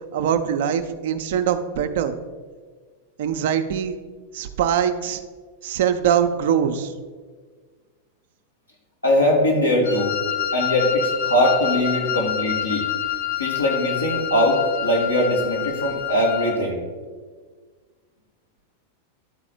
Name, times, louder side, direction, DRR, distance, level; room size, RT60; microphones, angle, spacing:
voice 1, 0.1-2.1 3.2-4.0 4.3-5.2 5.6-6.9, right 8 dB, 60° right, 9 dB, 0.6 m, -22 dB
voice 2, 9.0-10.2 10.5-12.9 13.4-16.8, left 1 dB, 90° left, -3 dB, 2.0 m, -21 dB
Wind instrument woodwind instrument, 9.8-16.6, left 10 dB, 65° left, 0.7 m, -27 dB
11.5 x 4.0 x 4.4 m, 1.5 s
figure-of-eight pair, 90°, 0 cm